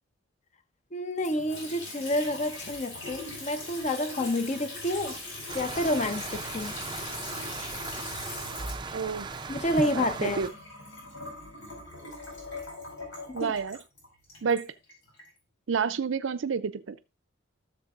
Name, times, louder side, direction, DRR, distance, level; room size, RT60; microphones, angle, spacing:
voice 1, 0.9-5.2 5.5-6.8 9.5-10.4 13.3-13.5, left 1 dB, 35° left, 0.7 m, -29 dB
Water tap faucet / Sink (filling or washing) / Trickle dribble, 1.2-15.3, left 2 dB, 85° left, 4.8 m, -41 dB
sound 1, 5.5-10.5, right 4 dB, 25° right, 0.4 m, -38 dB
voice 2, 8.9-9.3 9.7-10.5 13.3-13.8 14.4-14.7 15.7-17.0, right 6 dB, 70° right, 0.5 m, -29 dB
14.0 x 6.7 x 2.4 m
head